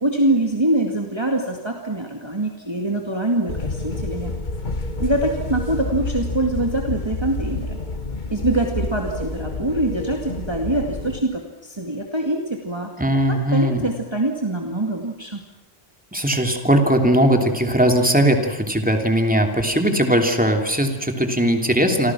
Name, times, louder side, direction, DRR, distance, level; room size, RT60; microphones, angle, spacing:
voice 1, 0.0-4.3 5.0-7.8 8.3-12.9 13.3-15.4, right 1 dB, 25° right, 2 dB, 2.3 m, -24 dB
sound 1, 3.5-11.2, left 2 dB, 45° left, 1.5 m, -29 dB
voice 2, 13.0-13.9 16.1-22.1, right 1 dB, 5° right, 4 dB, 2.9 m, -19 dB
29.0 x 24.5 x 6.2 m, 0.99 s
omnidirectional pair, 1.1 m